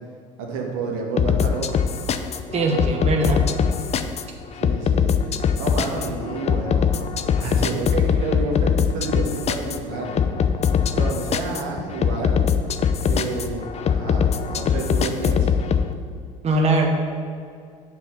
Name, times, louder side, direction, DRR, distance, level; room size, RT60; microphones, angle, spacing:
voice 1, 0.4-1.8 4.5-6.9 7.4-10.3 10.9-12.4 13.0-15.5, right 3 dB, 80° right, 0 dB, 1.4 m, -30 dB
sound 1, 1.2-15.9, left 7 dB, 40° left, 0.5 m, -22 dB
voice 2, 2.5-3.5 16.4-16.9, right 2 dB, 40° right, 1 dB, 1.2 m, -21 dB
7.7 x 4.5 x 6.0 m, 2.2 s
hypercardioid pair, 75°, 17 cm